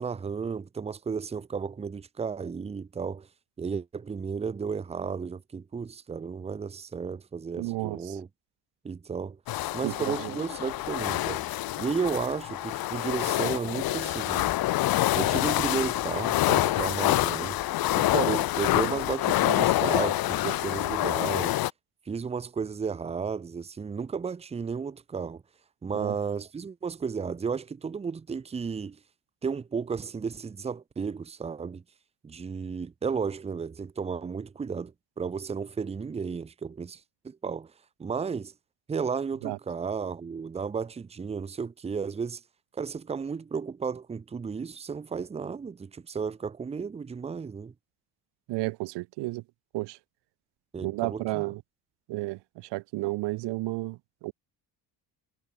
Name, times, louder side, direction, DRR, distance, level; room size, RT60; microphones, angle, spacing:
voice 1, 0.0-3.3 3.6-8.3 8.8-9.4 9.7-11.5 11.8-14.5 15.1-17.6 17.9-21.6 22.1-25.4 25.8-29.0 29.4-31.8 32.2-37.7 38.0-38.5 38.9-42.4 42.7-47.7 50.7-51.4, right 5 dB, 15° right, 0.8 m, -33 dB
voice 2, 7.6-8.2 9.8-10.4 25.9-26.2 39.4-39.6 48.5-49.4 49.7-50.0 50.8-51.6 52.1-54.3, right 21 dB, 85° right, 0.7 m, -32 dB
sound 1, 9.5-21.7, left 15 dB, 60° left, 1.2 m, -27 dB
cardioid pair, 175°, 41 cm